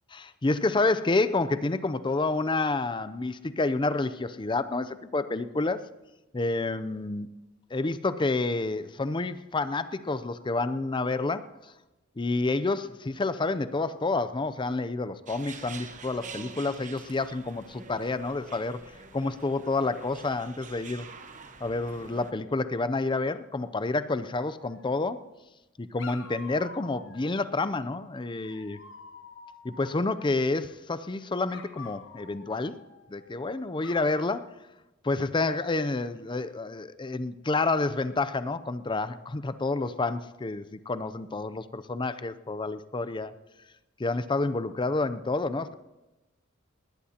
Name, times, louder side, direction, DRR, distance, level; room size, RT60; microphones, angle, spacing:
voice 1, 0.1-5.8 6.3-7.3 7.7-11.4 12.2-18.8 19.1-21.0 21.6-25.2 25.8-28.8 29.6-32.7 33.1-34.4 35.0-43.3 44.0-45.7, left 3 dB, 25° left, 13 dB, 0.5 m, -29 dB
sound 1, 15.3-22.3, right 5 dB, 40° right, 1.0 m, -46 dB
Dog, 24.5-25.3 26.0-27.6 28.4-30.6 31.5-33.4 33.8-34.2, left 5 dB, 65° left, 1.5 m, -48 dB
20.0 x 19.5 x 2.9 m, 1.1 s
head